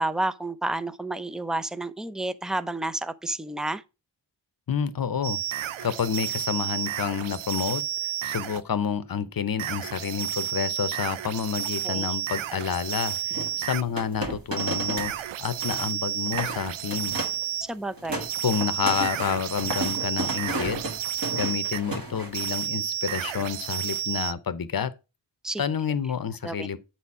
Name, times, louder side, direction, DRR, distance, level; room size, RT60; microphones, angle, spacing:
voice 1, 0.0-3.8 11.8-12.1 17.7-18.3 25.4-25.6 26.4-26.7, right 2 dB, ahead, 0.4 m, -30 dB
voice 2, 4.7-7.8 8.2-15.1 15.4-17.2 18.4-20.8 21.3-24.9 25.6-26.8, left 7 dB, 50° left, 0.8 m, -29 dB
sound 1, 5.2-8.6 9.6-13.9 14.6-17.7 18.2-21.8 22.3-24.3, right 12 dB, 80° right, 0.6 m, -31 dB
sound 2, 13.3-15.2 15.4-15.9 16.3-16.6 16.9-17.4 17.8-22.5, right 1 dB, 45° right, 1.7 m, -33 dB
7.9 x 4.3 x 4.7 m
wide cardioid pair, 75°, 47 cm